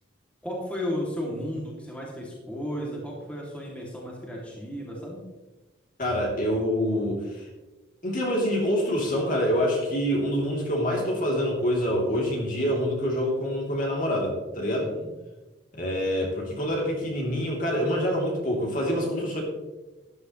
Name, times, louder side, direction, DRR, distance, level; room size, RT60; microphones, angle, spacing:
voice 1, 0.4-5.3 14.7-15.1, equal, 5° left, -4 dB, 2.5 m, -34 dB
voice 2, 6.0-7.5 8.0-14.9 15.7-19.4, equal, 45° left, -2 dB, 3.1 m, -26 dB
13.5 x 12.0 x 3.2 m, 1.2 s
head